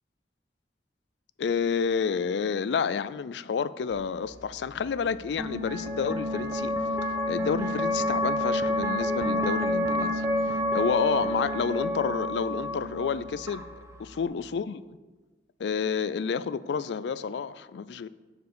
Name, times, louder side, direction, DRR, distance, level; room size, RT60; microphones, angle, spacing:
voice 1, 1.4-6.7 7.3-13.7 14.0-14.8 15.6-18.1, left 6 dB, 75° left, 0.4 m, -30 dB
sound 1, 3.9-14.2, left 1 dB, 15° right, 0.8 m, -29 dB
9.5 x 4.7 x 6.8 m
head